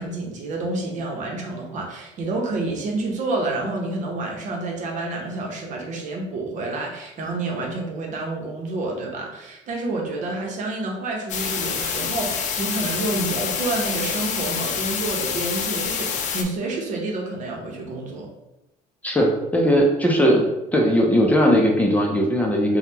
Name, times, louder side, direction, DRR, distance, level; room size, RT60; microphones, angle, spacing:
voice 1, 0.0-18.3, right 2 dB, 55° right, 0 dB, 0.9 m, -29 dB
sound 1, 11.3-16.4, left 7 dB, 55° left, 0.5 m, -27 dB
voice 2, 19.0-20.4 20.7-22.8, equal, 10° left, 0 dB, 0.6 m, -18 dB
3.4 x 2.3 x 2.8 m, 0.93 s
supercardioid pair, 95°, 15 cm